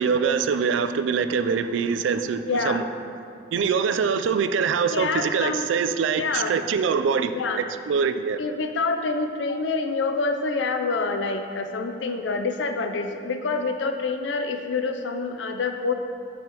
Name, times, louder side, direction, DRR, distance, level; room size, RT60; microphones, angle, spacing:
voice 1, 0.0-2.8 3.5-7.4 7.9-8.4, right 6 dB, 85° right, 10 dB, 0.3 m, -24 dB
voice 2, 2.5-2.8 4.9-5.7 6.2-6.6 7.3-7.6 8.4-15.9, left 4 dB, 75° left, 6 dB, 0.5 m, -27 dB
7.4 x 5.6 x 2.9 m, 2.5 s
head